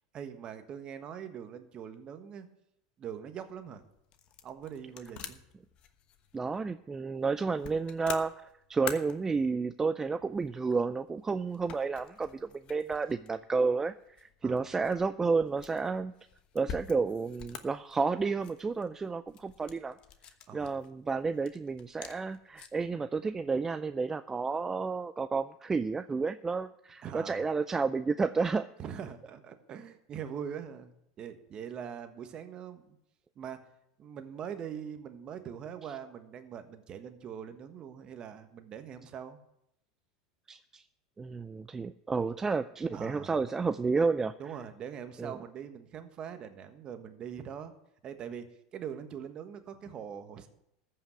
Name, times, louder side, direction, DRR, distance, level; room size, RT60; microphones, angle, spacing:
voice 1, 0.1-2.5 3.0-3.8 4.4-5.4 14.4-14.7 20.5-20.8 27.0-27.4 28.8-33.0 33.3-33.6 34.0-39.4 42.9-43.4 44.4-47.7 48.0-50.5, right 8 dB, 40° right, 8 dB, 1.4 m, -42 dB
sound 1, 3.4-22.9, left 8 dB, 45° left, 1.2 m, -49 dB
voice 2, 6.3-16.1 16.5-20.0 20.5-28.7 40.5-40.8 41.2-44.3 45.2-45.3, right 4 dB, 20° right, 12 dB, 0.4 m, -31 dB
14.0 x 5.7 x 8.0 m, 0.80 s
hypercardioid pair, 95°, 2 cm